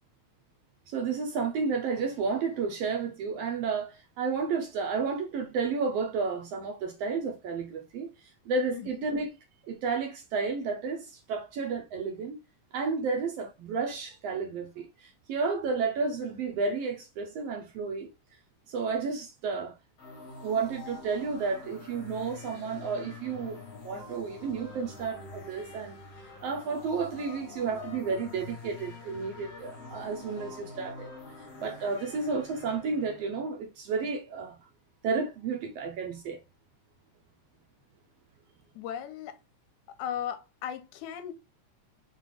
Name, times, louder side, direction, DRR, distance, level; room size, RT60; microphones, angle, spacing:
voice 1, 0.9-8.1 8.5-9.3 9.6-12.4 12.7-18.1 18.7-19.8 20.4-23.6 23.8-25.9 26.4-31.1 31.4-34.6 35.0-36.4, right 4 dB, 75° right, 1.5 m, -32 dB
voice 2, 8.7-9.1 38.8-39.4 39.9-41.3, left 9 dB, 90° left, 2.0 m, -37 dB
sound 1, 20.0-33.5, left 4 dB, 65° left, 2.0 m, -46 dB
5.4 x 2.4 x 3.2 m
omnidirectional pair, 3.3 m